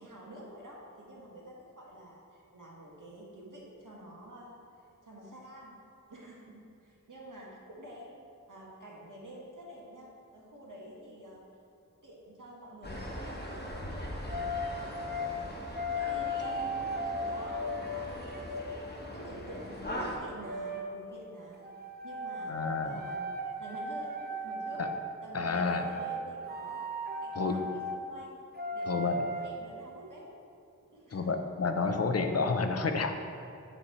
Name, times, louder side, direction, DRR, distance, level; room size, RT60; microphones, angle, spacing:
voice 1, 0.0-5.8 6.1-8.2 8.5-11.4 12.0-14.3 15.3-15.6 15.9-18.5 18.8-21.7 22.0-23.3 23.6-24.9 25.2-26.9 27.2-28.4 28.7-29.2 29.4-30.3 30.8-31.3, right 1 dB, 75° right, -4 dB, 1.4 m, -49 dB
sound 1, 12.8-20.2, equal, 30° left, 1.0 m, -41 dB
sound 2, 14.3-15.3 15.7-18.8 20.4-20.9 21.6-25.0 25.7-26.2 26.5-28.0 28.5-29.5, left 1 dB, 30° right, 0.5 m, -36 dB
voice 2, 22.5-23.0 24.8-24.9 25.3-25.9 27.3-27.6 28.9-29.2 31.1-33.1, left 4 dB, 50° left, 6 dB, 0.6 m, -30 dB
8.8 x 3.2 x 4.2 m, 2.6 s
wide cardioid pair, 55°, 32 cm